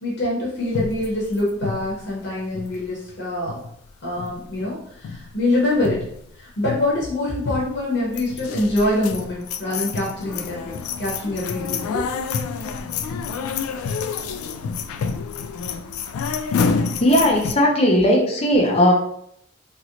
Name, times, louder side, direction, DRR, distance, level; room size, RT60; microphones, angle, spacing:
voice 1, 0.0-3.6 4.0-6.0 6.4-12.0, left 1 dB, 50° left, -5 dB, 0.9 m, -25 dB
sound 1, 0.7-3.2 3.4-3.9 4.2-4.8 5.0-5.3 5.7-6.3 6.6-7.0 7.4-7.8 8.1-17.5, left 5 dB, 85° left, 0.3 m, -28 dB
voice 2, 17.0-18.9, equal, 30° left, 0 dB, 0.6 m, -17 dB
2.9 x 2.9 x 2.7 m, 0.70 s
head